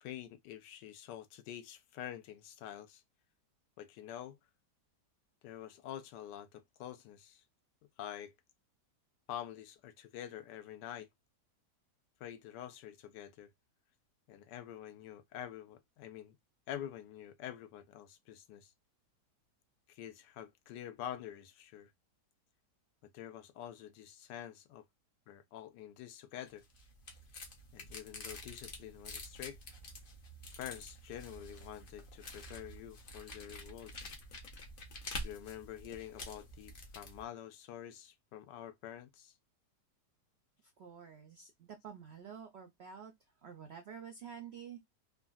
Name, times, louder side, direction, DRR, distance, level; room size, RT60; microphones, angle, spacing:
voice 1, 0.0-3.0 3.8-4.4 5.4-7.4 8.0-8.3 9.3-11.1 12.2-13.5 14.3-16.4 16.7-18.7 19.9-21.9 23.1-24.8 25.3-26.6 27.7-29.6 30.6-33.9 35.2-39.3, left 11 dB, 85° left, 1.3 m, -47 dB
sound 1, 26.5-37.2, left 1 dB, 55° left, 0.6 m, -48 dB
voice 2, 40.6-43.1 43.4-44.8, right 7 dB, 80° right, 0.5 m, -49 dB
3.6 x 2.2 x 2.3 m
omnidirectional pair, 1.8 m